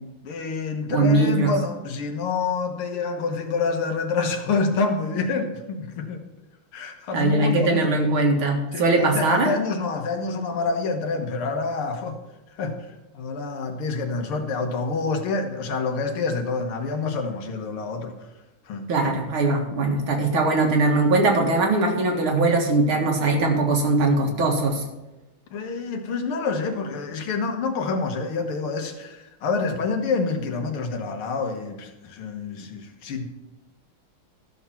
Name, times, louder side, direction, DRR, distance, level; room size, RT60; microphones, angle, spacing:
voice 1, 0.2-6.2 6.7-8.0 8.7-12.2 12.6-12.8 13.1-18.2 18.7-18.9 25.5-33.2, left 4 dB, 80° left, 5 dB, 2.1 m, -27 dB
voice 2, 0.9-1.5 7.1-9.5 18.9-24.8, right 2 dB, 70° right, 1 dB, 2.6 m, -21 dB
13.5 x 6.5 x 5.8 m, 1.0 s
omnidirectional pair, 2.4 m